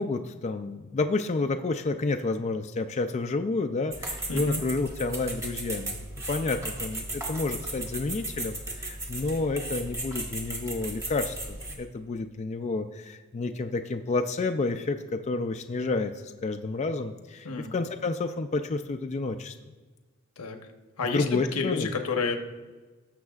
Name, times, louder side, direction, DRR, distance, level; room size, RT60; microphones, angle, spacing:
voice 1, 0.0-6.0 6.3-19.5 21.0-21.9, left 3 dB, 30° left, 7 dB, 0.4 m, -30 dB
sound 1, 3.9-11.7, right 2 dB, 15° right, 1.3 m, -36 dB
voice 2, 4.3-4.6 17.4-17.7 20.4-20.6 21.0-22.4, left 4 dB, 85° left, 5 dB, 0.9 m, -29 dB
19.0 x 6.5 x 2.4 m, 1.3 s
head